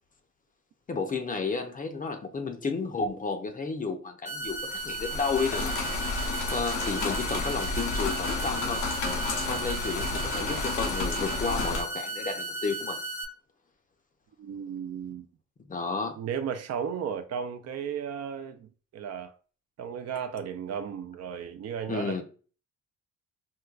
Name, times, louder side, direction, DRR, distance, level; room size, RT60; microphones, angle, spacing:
voice 1, 0.9-5.8 6.5-8.9 9.4-13.0 15.7-16.2 21.9-22.2, left 4 dB, 30° left, 0.5 m, -32 dB
sound 1, 4.3-13.3, right 2 dB, 5° right, 0.7 m, -35 dB
sound 2, 4.6-11.8, left 3 dB, 90° left, 0.8 m, -31 dB
voice 2, 14.4-15.3 16.2-19.3 19.8-22.2, right 7 dB, 55° right, 0.5 m, -34 dB
4.5 x 2.2 x 2.4 m
cardioid pair, 90°, 30 cm